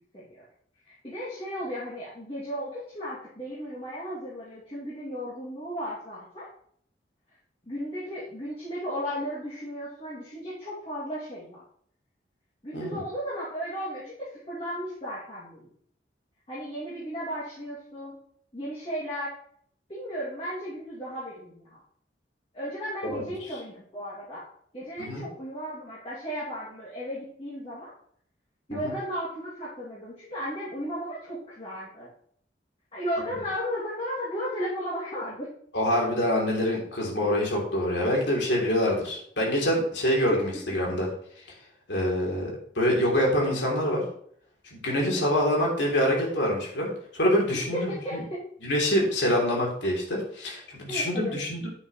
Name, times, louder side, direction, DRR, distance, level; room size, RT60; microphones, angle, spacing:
voice 1, 0.1-0.4 0.8-6.5 7.7-11.6 12.6-15.7 16.5-18.1 18.5-19.4 19.9-21.8 22.5-24.4 24.7-27.9 28.7-32.1 32.9-35.5 40.3-40.4 45.0-45.2 47.7-48.4 50.9-51.4, equal, 35° left, -10 dB, 2.6 m, -35 dB
voice 2, 35.7-41.1 41.9-42.5 42.7-44.0 44.7-48.2 48.6-51.7, left 1 dB, 90° left, -2 dB, 3.2 m, -25 dB
9.5 x 8.0 x 3.2 m, 0.64 s
head